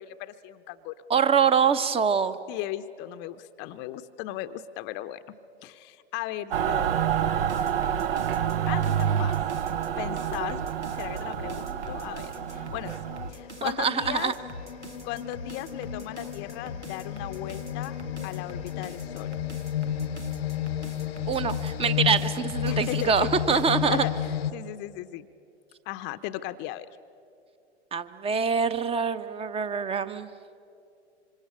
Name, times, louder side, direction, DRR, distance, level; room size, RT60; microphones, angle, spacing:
voice 1, 0.0-0.9 2.5-5.3 5.6-7.0 8.7-9.6 10.0-10.6 10.9-13.0 13.3-14.3 15.0-17.9 18.2-19.3 22.7-23.3 23.9-25.3 25.9-26.9, left 14 dB, 35° left, 11 dB, 0.8 m, -37 dB
voice 2, 1.1-2.4 13.6-14.3 21.3-24.0 27.9-30.3, right 6 dB, 15° right, 13 dB, 1.0 m, -24 dB
Mechanical fan, 6.5-13.3, right 9 dB, 60° right, 0.9 m, -28 dB
sound 1, 7.4-23.9, equal, 85° right, 2.1 m, -44 dB
sound 2, 9.9-10.1 10.8-24.5, left 11 dB, 65° left, 0.9 m, -33 dB
26.5 x 25.5 x 8.6 m, 2.6 s
figure-of-eight pair, 95°, 33 cm